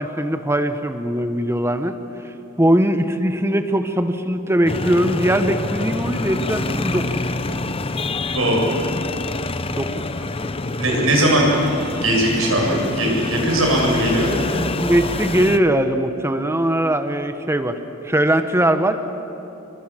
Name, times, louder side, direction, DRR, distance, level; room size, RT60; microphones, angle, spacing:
voice 1, 0.0-2.0 2.6-7.2 9.7-10.0 14.5-17.8 18.0-19.0, right 1 dB, 10° right, 9 dB, 1.3 m, -20 dB
sound 1, 4.7-15.6, left 2 dB, 25° left, 0.8 m, -26 dB
voice 2, 8.3-8.6 10.8-11.5 12.0-14.3, right 1 dB, 75° right, -1 dB, 8.0 m, -19 dB
28.0 x 23.0 x 7.6 m, 2.9 s
head